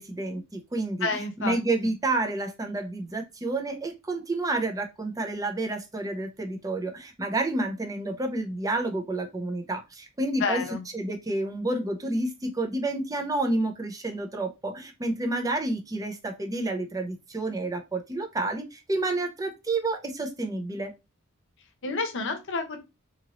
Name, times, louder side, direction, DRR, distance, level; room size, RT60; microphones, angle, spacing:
voice 1, 0.0-1.1 1.4-10.6 10.9-20.9, right 2 dB, 15° right, 3 dB, 0.5 m, -29 dB
voice 2, 1.0-1.6 10.4-10.8 21.8-22.8, left 4 dB, 60° left, 6 dB, 0.7 m, -29 dB
2.8 x 2.6 x 2.9 m, 0.24 s
head